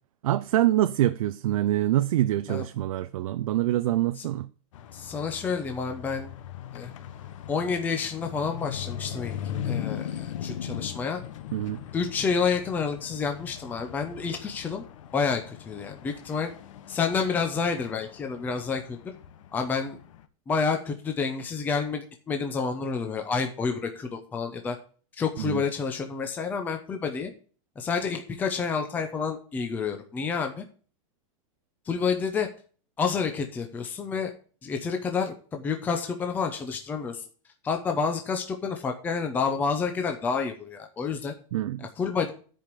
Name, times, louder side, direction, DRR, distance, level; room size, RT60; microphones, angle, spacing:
voice 1, 0.2-4.5 11.5-11.8 25.4-25.6 41.5-41.9, right 14 dB, 85° right, 0.5 m, -25 dB
sound 1, 4.7-20.2, left 9 dB, 65° left, 1.1 m, -39 dB
voice 2, 4.9-6.3 6.7-6.9 7.5-9.3 9.6-11.2 11.9-14.8 15.1-16.5 16.9-19.0 19.5-20.0 20.5-24.8 25.2-27.3 27.8-30.6 31.9-32.5 33.0-34.3 34.6-37.2 37.6-41.3 41.8-42.3, left 5 dB, 10° left, 0.7 m, -29 dB
10.5 x 5.0 x 7.6 m
supercardioid pair, 175°, 17 cm